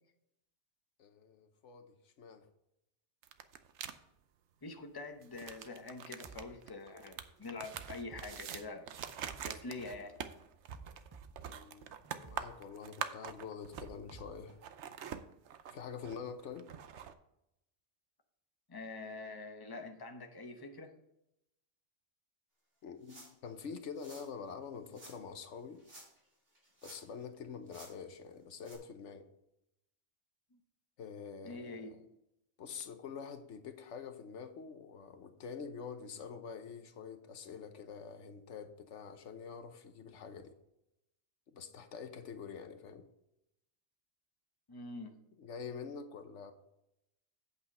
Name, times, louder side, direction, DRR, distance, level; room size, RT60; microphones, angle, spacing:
voice 1, 1.0-2.4 11.5-11.9 12.1-14.6 15.7-16.7 22.8-25.8 26.8-29.3 31.0-31.9 32.6-40.5 41.5-43.1 45.4-46.5, left 6 dB, 85° left, 8 dB, 1.2 m, -46 dB
sound 1, 3.2-3.9 5.2-14.2 14.5-17.1, right 8 dB, 80° right, 1.0 m, -45 dB
voice 2, 4.6-8.9 9.4-10.2 18.7-20.9 31.4-31.9 44.7-45.2, left 3 dB, 20° left, 5 dB, 0.9 m, -45 dB
sound 2, 6.2-6.5 7.0-7.2 7.7-9.5 10.0-10.2 10.7-12.5 13.0-13.2 13.7-15.2, right 5 dB, 25° right, 0.6 m, -55 dB
sound 3, 23.0-23.5 23.9-24.3 24.9-25.2 25.8-26.3 26.6-27.2 27.7-27.9 28.6-28.8, right 1 dB, 55° right, 3.0 m, -54 dB
8.5 x 7.9 x 4.2 m, 0.84 s
omnidirectional pair, 1.2 m